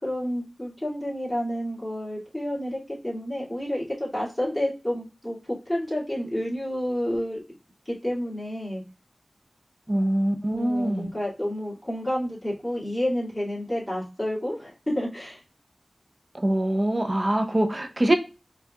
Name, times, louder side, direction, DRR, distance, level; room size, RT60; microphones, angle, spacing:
voice 1, 0.0-7.4 7.9-8.8 10.5-15.4, equal, 15° left, -6 dB, 2.0 m, -30 dB
voice 2, 9.9-11.1 16.3-18.1, right 1 dB, 35° right, 5 dB, 0.6 m, -24 dB
4.5 x 2.4 x 2.2 m, 0.32 s
wide cardioid pair, 55°, 0 cm